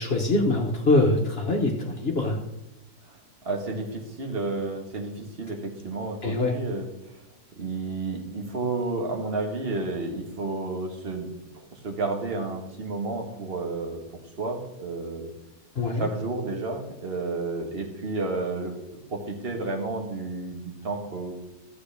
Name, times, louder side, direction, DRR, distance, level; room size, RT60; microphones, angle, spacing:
voice 1, 0.0-2.4 6.2-6.5 15.8-16.1, left 2 dB, 45° left, 1 dB, 1.3 m, -23 dB
voice 2, 3.4-6.9 7.6-11.3 11.7-14.0 14.4-15.3 16.0-18.7 19.1-21.3, right 3 dB, 40° right, 3 dB, 1.6 m, -31 dB
14.0 x 8.4 x 3.4 m, 0.97 s
omnidirectional pair, 1.7 m